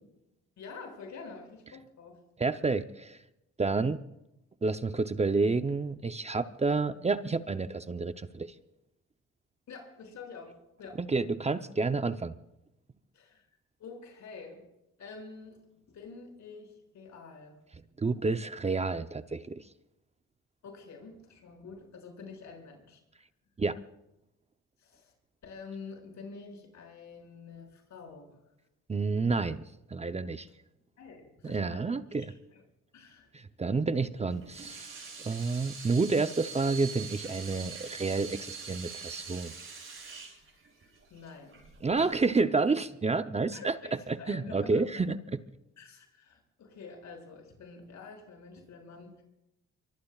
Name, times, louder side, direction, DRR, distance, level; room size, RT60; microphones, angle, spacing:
voice 1, 0.6-2.2 6.9-7.1 9.7-11.0 13.1-13.4 13.8-14.6 15.0-15.6 15.9-17.5 20.6-23.0 24.8-25.1 25.4-28.4 31.0-32.6 32.9-33.3 41.1-41.6 41.9-42.2 43.5-43.9 44.2-44.8 45.8-49.2, left 4 dB, 70° left, 2 dB, 6.6 m, -47 dB
voice 2, 2.4-3.2 3.6-4.0 4.6-8.5 11.0-12.3 18.0-19.6 23.6-23.8 28.9-29.6 29.9-30.5 31.4-32.3 33.3-34.9 35.2-39.5 41.8-43.8 44.1-45.4, right 4 dB, 20° right, 10 dB, 0.7 m, -29 dB
Water tap faucet / Sink (filling or washing), 34.3-42.4, right 5 dB, 45° right, 7.4 m, -44 dB
24.0 x 24.0 x 2.4 m, 0.88 s
cardioid pair, 90°, 30 cm